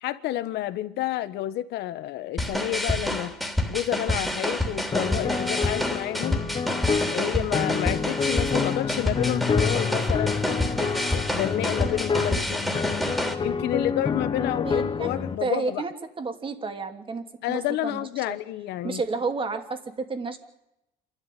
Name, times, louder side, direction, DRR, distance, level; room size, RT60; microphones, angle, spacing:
voice 1, 0.0-3.3 3.7-6.4 7.1-10.4 11.1-12.7 13.4-15.8 17.4-19.0, left 14 dB, 80° left, 1.4 m, -30 dB
sound 1, 2.4-13.3, left 1 dB, ahead, 3.2 m, -28 dB
sound 2, 4.9-15.4, left 5 dB, 30° left, 1.3 m, -28 dB
voice 2, 14.6-18.4 18.8-20.4, right 4 dB, 30° right, 2.9 m, -31 dB
28.0 x 12.5 x 9.3 m
cardioid pair, 110°, 17 cm